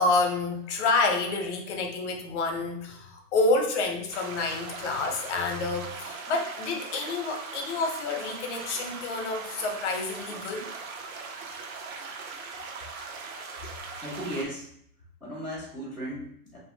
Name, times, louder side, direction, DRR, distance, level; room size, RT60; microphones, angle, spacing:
voice 1, 0.0-10.7, left 3 dB, 50° left, 3 dB, 0.7 m, -28 dB
sound 1, 4.1-14.5, right 4 dB, 60° right, 0.7 m, -40 dB
voice 2, 14.0-14.7 15.2-16.6, equal, 5° right, -14 dB, 0.4 m, -36 dB
2.7 x 2.5 x 2.6 m, 0.65 s
hypercardioid pair, 140°, 46 cm